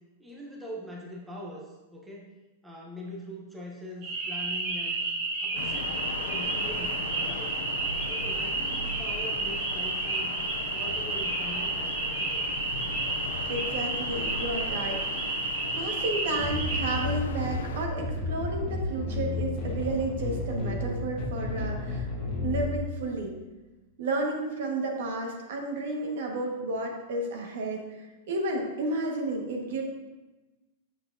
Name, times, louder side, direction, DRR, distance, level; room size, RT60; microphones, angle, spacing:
voice 1, 0.2-2.3 2.6-5.0 5.4-7.5 8.1-10.4 10.7-12.4, equal, 5° right, -3 dB, 0.7 m, -42 dB
sound 1, 4.0-17.0, right 3 dB, 35° right, 1.6 m, -31 dB
sound 2, 5.5-17.8, left 4 dB, 90° left, 0.5 m, -38 dB
voice 2, 13.5-15.4 15.7-23.3 24.0-29.8, right 2 dB, 65° right, 1 dB, 1.4 m, -32 dB
sound 3, 16.4-22.8, left 2 dB, 15° left, 1.5 m, -32 dB
8.4 x 7.0 x 2.6 m, 1.1 s
supercardioid pair, 170°, 0 cm